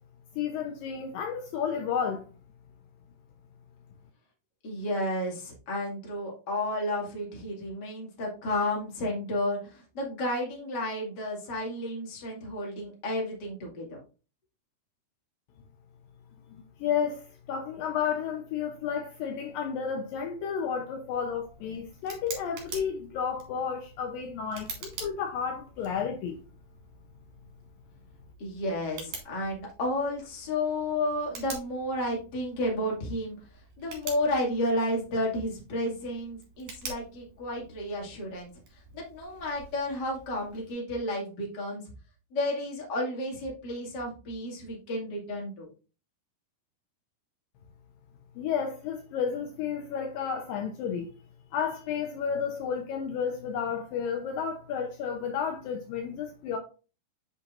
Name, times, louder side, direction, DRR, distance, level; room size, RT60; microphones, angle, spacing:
voice 1, 0.4-2.3 16.5-26.4 48.4-51.1 51.5-56.6, left 7 dB, 75° left, 2.4 m, -32 dB
voice 2, 4.6-14.0 28.4-33.4 33.8-38.5 38.9-41.8 42.3-45.7, left 1 dB, 35° left, 2.2 m, -32 dB
Tick, 21.1-40.7, right 4 dB, 55° right, 3.5 m, -47 dB
8.2 x 5.7 x 2.5 m
omnidirectional pair, 4.3 m